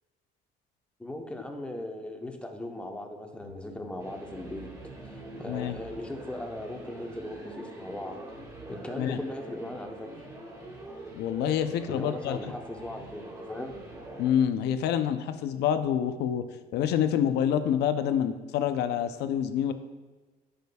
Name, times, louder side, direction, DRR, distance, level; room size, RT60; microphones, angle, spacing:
voice 1, 1.0-4.7 5.0-8.2 8.7-10.1 11.9-13.8, left 1 dB, 5° left, 3 dB, 0.8 m, -38 dB
sound 1, 3.4-14.3, right 1 dB, 20° right, 1.6 m, -44 dB
voice 2, 5.5-5.8 9.0-9.2 11.1-12.4 14.2-16.4 16.7-19.7, left 9 dB, 80° left, 10 dB, 0.5 m, -27 dB
10.5 x 5.1 x 2.3 m, 1.3 s
cardioid pair, 110°, 17 cm